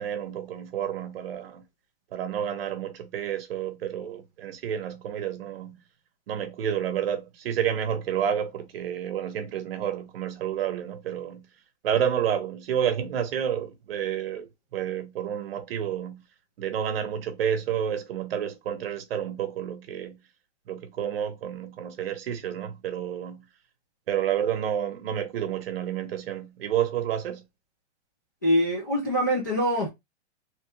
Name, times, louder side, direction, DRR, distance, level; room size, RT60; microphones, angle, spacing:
voice 1, 0.0-1.6 2.1-5.8 6.3-11.5 11.8-16.2 16.6-20.2 20.7-23.4 24.1-27.4, right 9 dB, 50° right, 0.8 m, -30 dB
voice 2, 28.4-29.9, equal, 15° left, 0.3 m, -24 dB
3.1 x 2.2 x 3.0 m
hypercardioid pair, 165°, 37 cm